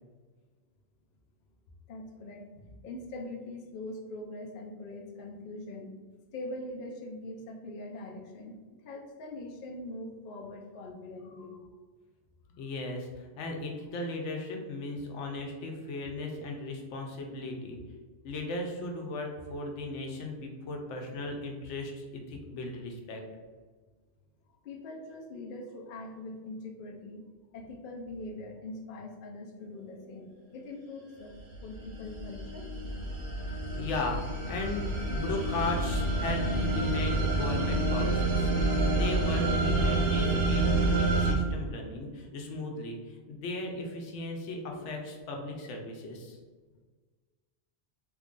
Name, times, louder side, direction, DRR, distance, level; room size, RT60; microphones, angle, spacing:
voice 1, 1.9-5.9 6.3-11.7 24.6-27.2 27.5-31.4 31.6-32.7, left 2 dB, 60° left, 2 dB, 0.6 m, -42 dB
voice 2, 12.6-17.8 18.2-23.2 33.5-46.4, left 2 dB, 90° left, 2 dB, 1.0 m, -37 dB
sound 1, 31.3-41.3, right 2 dB, 90° right, 1.2 m, -28 dB
3.1 x 2.5 x 3.6 m, 1.4 s
omnidirectional pair, 1.2 m